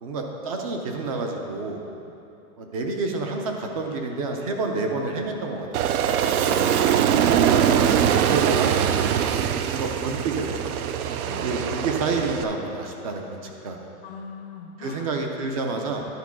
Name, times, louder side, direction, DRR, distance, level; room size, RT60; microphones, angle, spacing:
voice 1, 0.0-1.8 2.6-5.7 7.4-8.7 9.7-10.5 11.3-13.9 14.8-16.1, right 3 dB, 25° right, 3 dB, 0.4 m, -29 dB
Aircraft, 5.7-12.4, right 9 dB, 75° right, 0.6 m, -22 dB
voice 2, 6.4-7.6 11.2-11.6 14.0-15.1, left 5 dB, 45° left, 3 dB, 0.5 m, -40 dB
11.0 x 4.4 x 6.0 m, 2.8 s
supercardioid pair, 170°, 44 cm